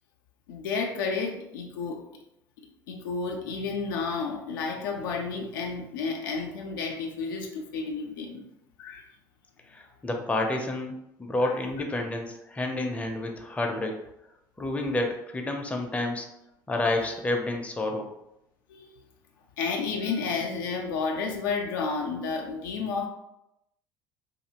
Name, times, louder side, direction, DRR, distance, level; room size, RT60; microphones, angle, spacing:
voice 1, 0.5-2.1 2.6-8.4 8.8-9.1 11.4-11.6 18.7-18.9 19.6-23.1, left 4 dB, 75° left, 2 dB, 0.4 m, -31 dB
voice 2, 9.7-14.0 14.6-16.3 16.7-18.1, left 2 dB, 10° left, 2 dB, 0.5 m, -29 dB
2.7 x 2.5 x 2.9 m, 0.84 s
hypercardioid pair, 65°, 11 cm